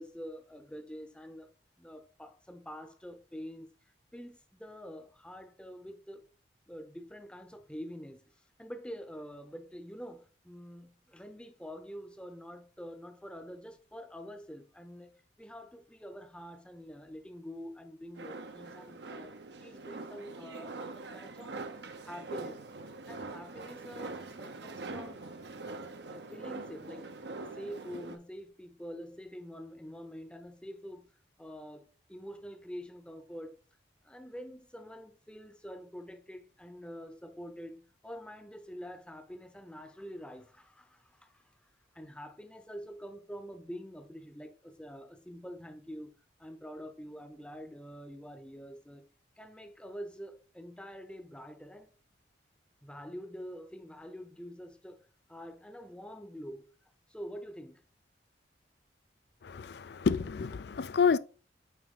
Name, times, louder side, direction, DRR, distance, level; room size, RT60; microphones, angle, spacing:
voice 1, 0.0-1.5 1.8-3.7 4.1-6.3 6.7-8.2 8.6-19.3 19.6-22.6 23.1-25.3 26.1-27.1 27.4-31.1 31.4-33.6 34.0-41.6 41.9-46.1 46.4-49.1 49.4-51.9 52.8-56.6 57.1-57.8, equal, 5° left, 0.7 m, -46 dB
sound 1, 18.1-28.2, right 3 dB, 65° right, 0.8 m, -43 dB
voice 2, 59.4-61.2, left 5 dB, 60° left, 0.4 m, -29 dB
8.9 x 3.4 x 3.8 m
head